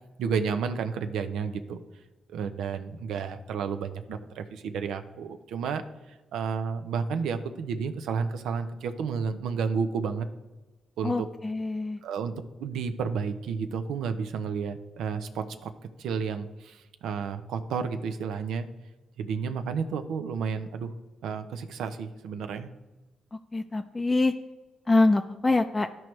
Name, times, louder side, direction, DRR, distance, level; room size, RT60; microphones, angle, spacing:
voice 1, 0.2-1.8 2.3-5.8 6.3-10.3 11.0-11.3 12.0-12.3 12.6-15.7 16.0-18.7 19.2-20.9 21.2-22.7, right 6 dB, 85° right, 9 dB, 0.6 m, -31 dB
voice 2, 11.0-12.0 23.5-24.3 24.9-25.9, left 2 dB, 25° left, 5 dB, 0.4 m, -24 dB
13.0 x 4.6 x 3.2 m, 1.2 s
cardioid pair, 70°, 0 cm